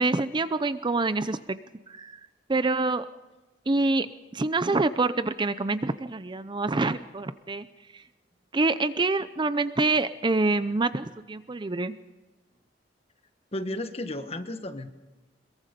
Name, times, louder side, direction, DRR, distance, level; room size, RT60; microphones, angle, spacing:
voice 1, 0.0-1.6 1.9-2.2 2.5-3.1 3.7-4.1 4.3-7.7 7.9-8.0 8.5-11.9, right 3 dB, 25° right, 13 dB, 0.6 m, -26 dB
voice 2, 13.5-14.9, left 1 dB, 35° left, 8 dB, 1.3 m, -33 dB
22.0 x 22.0 x 5.2 m, 1.1 s
head